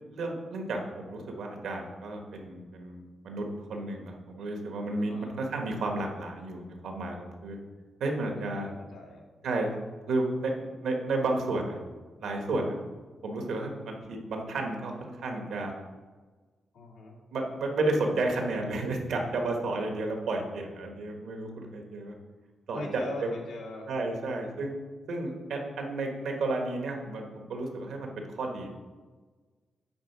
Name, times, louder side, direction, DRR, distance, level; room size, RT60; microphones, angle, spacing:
voice 1, 0.1-7.6 8.0-8.7 9.4-9.7 10.1-11.8 12.2-12.8 13.2-15.7 17.3-22.1 22.7-23.3 23.9-24.7 25.1-28.7, right 2 dB, 85° right, 2 dB, 1.4 m, -32 dB
voice 2, 4.9-5.3 8.5-9.3 16.7-17.2 22.7-23.9, left 2 dB, 85° left, -1 dB, 1.8 m, -41 dB
8.7 x 3.6 x 6.0 m, 1.4 s
cardioid pair, 110°, 0 cm